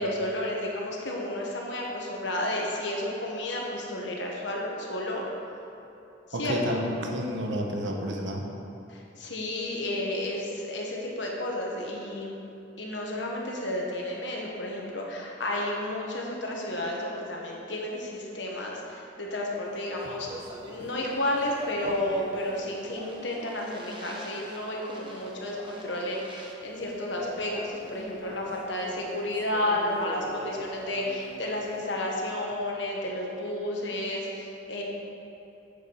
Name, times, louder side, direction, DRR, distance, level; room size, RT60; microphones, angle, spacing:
voice 1, 0.0-5.3 6.3-6.9 8.9-12.3 12.8-20.3 20.7-34.8, left 1 dB, 70° left, -2 dB, 1.5 m, -32 dB
voice 2, 6.3-8.4, equal, 70° right, 1 dB, 1.1 m, -30 dB
Speech, 19.7-32.1, right 1 dB, 25° right, 1.1 m, -44 dB
7.5 x 7.3 x 5.6 m, 2.9 s
head